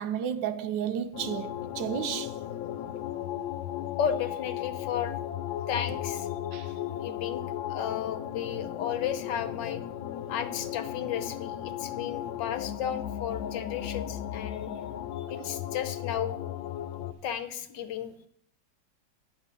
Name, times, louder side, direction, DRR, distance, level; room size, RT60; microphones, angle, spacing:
voice 1, 0.0-2.3 6.5-6.7, right 9 dB, 80° right, 1.2 m, -32 dB
sound 1, 1.1-17.1, left 11 dB, 90° left, 1.4 m, -36 dB
voice 2, 4.0-5.2 5.7-6.3 6.9-7.4 7.7-9.8 10.3-14.7 15.2-16.4 17.2-18.3, left 9 dB, 70° left, 1.4 m, -33 dB
10.0 x 6.5 x 5.3 m
omnidirectional pair, 2.0 m